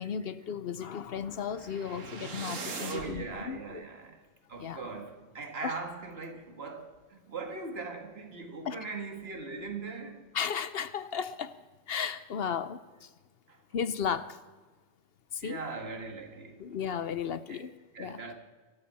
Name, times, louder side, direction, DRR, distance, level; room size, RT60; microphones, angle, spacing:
voice 1, 0.0-3.8 4.6-4.8 5.6-5.7 8.7-8.8 10.3-11.6 11.9-13.1 13.7-14.4 15.3-15.6 16.6-17.7 18.0-18.2, left 7 dB, 60° left, 0.7 m, -35 dB
sound 1, 1.1-3.3, right 4 dB, 70° right, 1.9 m, -41 dB
voice 2, 2.8-10.3 13.5-13.6 15.4-16.8 17.5-18.3, right 4 dB, 50° right, 1.9 m, -40 dB
24.0 x 13.0 x 4.2 m
omnidirectional pair, 1.4 m